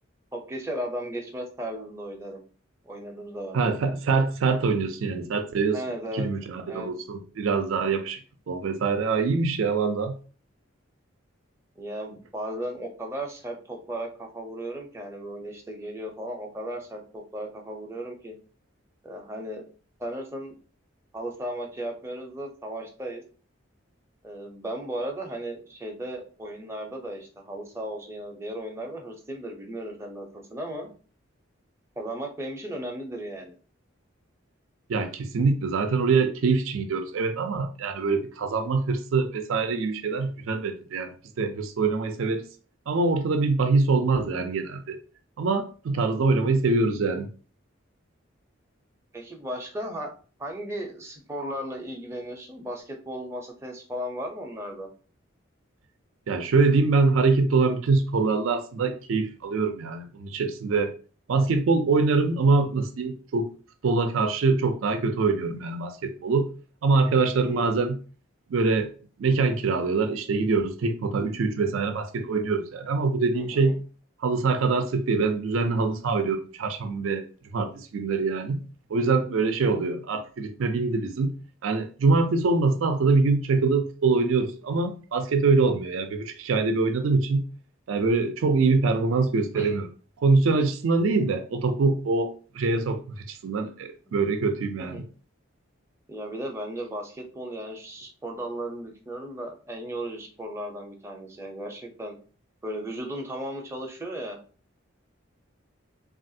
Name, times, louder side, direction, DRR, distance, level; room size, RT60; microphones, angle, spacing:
voice 1, 0.3-2.4 2.8-3.8 5.7-6.3 6.7-6.9 11.8-18.3 19.0-19.6 20.0-20.6 21.1-23.2 24.2-30.9 32.0-33.6 49.1-50.1 50.4-54.9 67.4-67.8 73.3-73.8 89.5-89.8 94.8-95.0 96.1-102.2 102.6-104.4, right 1 dB, 15° right, 0.5 m, -36 dB
voice 2, 3.5-5.8 6.1-8.2 8.5-10.2 34.9-42.4 42.9-45.0 45.4-47.3 56.3-60.9 61.3-63.5 63.8-66.5 66.8-68.0 68.5-68.9 69.2-73.8 74.2-77.3 77.5-78.6 78.9-81.3 81.6-87.4 87.9-89.9 90.2-95.0, right 4 dB, 80° right, 0.4 m, -24 dB
3.3 x 2.4 x 2.6 m
head